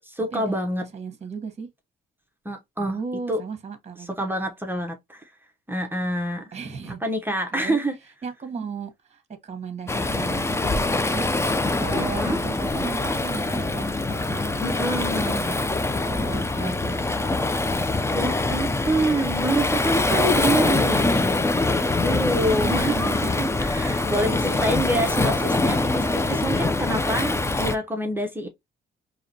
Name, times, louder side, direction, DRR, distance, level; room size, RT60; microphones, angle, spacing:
voice 1, 0.2-0.9 2.4-3.0 3.3-3.4 4.0-5.3 5.7-7.9 12.0-12.4 14.6-15.4 16.5-16.8 18.1-21.4 22.0-28.5, right 1 dB, 10° right, 0.9 m, -27 dB
voice 2, 0.8-1.7 2.8-4.3 6.5-7.0 7.3-7.8 8.2-15.6 16.1-17.1 20.4-21.0 22.4-23.3 24.1-24.2 24.5-24.7 26.3-26.6 28.4-28.5, right 5 dB, 35° right, 1.3 m, -36 dB
Waves surf, 9.9-27.8, left 2 dB, 15° left, 0.5 m, -24 dB
4.9 x 2.9 x 2.8 m
cardioid pair, 90°, 20 cm